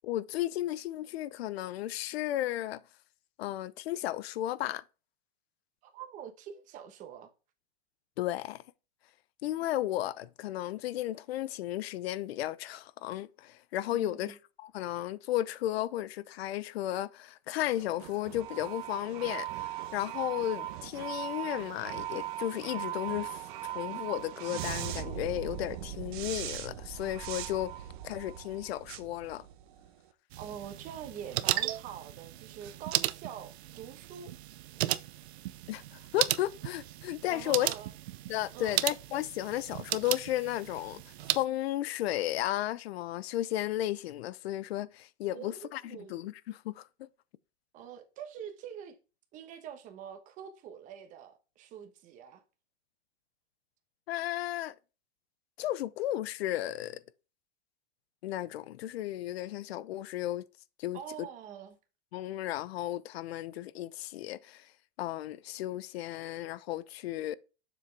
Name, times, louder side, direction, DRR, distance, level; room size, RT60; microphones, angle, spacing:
voice 1, 0.0-2.8 3.4-4.8 8.2-8.6 9.4-27.7 28.0-29.4 35.7-37.7 38.3-41.0 41.3-46.9 54.1-54.7 55.6-57.0 58.2-60.4 60.8-61.0 62.1-64.7 65.0-67.3, left 13 dB, 70° left, 0.7 m, -34 dB
voice 2, 5.8-7.3 13.9-14.4 30.4-34.3 37.3-37.9 38.5-38.8 45.3-46.1 47.7-49.0 49.3-52.4 60.9-61.8, right 9 dB, 25° right, 1.0 m, -45 dB
sound 1, 17.6-30.0, right 12 dB, 50° right, 0.9 m, -39 dB
sound 2, 30.3-41.4, right 15 dB, 85° right, 0.6 m, -35 dB
7.1 x 5.9 x 3.3 m
supercardioid pair, 165°, 32 cm